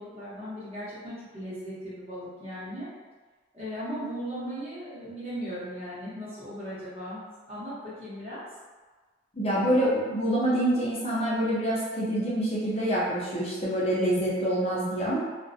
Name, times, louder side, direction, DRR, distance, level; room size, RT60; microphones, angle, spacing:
voice 1, 0.0-2.9 3.5-8.4, equal, 35° right, -11 dB, 0.9 m, -37 dB
voice 2, 9.3-15.2, right 1 dB, 30° left, -7 dB, 0.5 m, -26 dB
2.3 x 2.1 x 2.6 m, 1.3 s
head